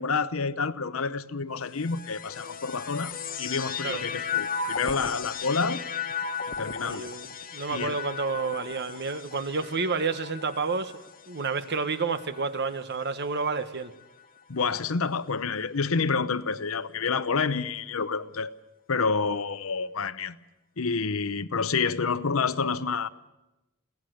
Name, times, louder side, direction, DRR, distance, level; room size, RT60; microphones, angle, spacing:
voice 1, 0.0-5.8 6.5-7.1 7.7-8.0 14.5-18.5 18.9-20.4 20.8-23.1, left 5 dB, 80° left, 0.8 m, -28 dB
sound 1, 1.7-13.1 13.9-14.7, left 6 dB, 45° left, 1.4 m, -36 dB
voice 2, 6.9-13.9, right 4 dB, 55° right, 1.1 m, -30 dB
23.0 x 17.0 x 7.9 m
head